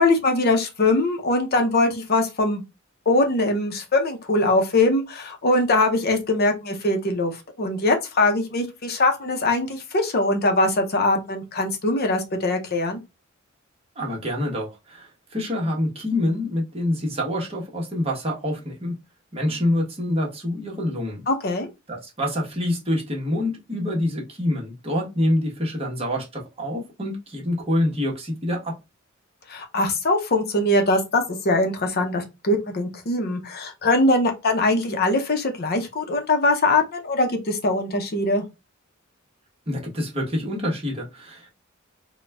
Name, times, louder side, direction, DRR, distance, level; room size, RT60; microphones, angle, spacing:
voice 1, 0.0-2.6 3.1-13.0 21.3-21.7 29.5-38.4, left 2 dB, 50° left, 0.7 m, -22 dB
voice 2, 14.0-18.9 19.3-21.2 21.9-28.7 39.7-41.5, left 1 dB, 30° right, 1.2 m, -26 dB
4.1 x 2.2 x 3.3 m
head